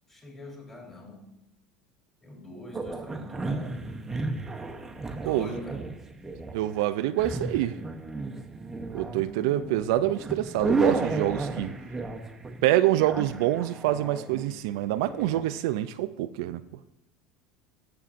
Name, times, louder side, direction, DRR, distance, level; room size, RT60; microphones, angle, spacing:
voice 1, 0.1-1.2 2.2-3.8 5.2-5.8, left 1 dB, 15° left, 3.0 m, -42 dB
sound 1, 2.7-15.4, right 3 dB, 15° right, 0.8 m, -33 dB
voice 2, 6.5-7.7 8.9-11.7 12.6-16.6, right 14 dB, 80° right, 0.3 m, -26 dB
14.0 x 6.9 x 2.5 m
supercardioid pair, 115°, 2 cm